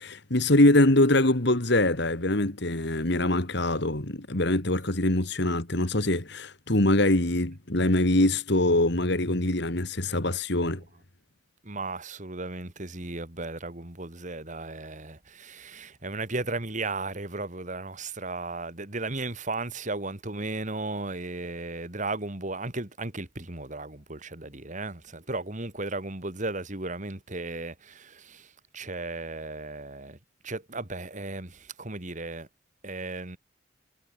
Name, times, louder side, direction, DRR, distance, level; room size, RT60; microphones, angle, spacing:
voice 1, 0.0-10.8, left 1 dB, 60° left, 2.4 m, -23 dB
voice 2, 11.6-30.2 30.4-32.5 32.8-33.4, right 2 dB, 40° right, 2.5 m, -35 dB
head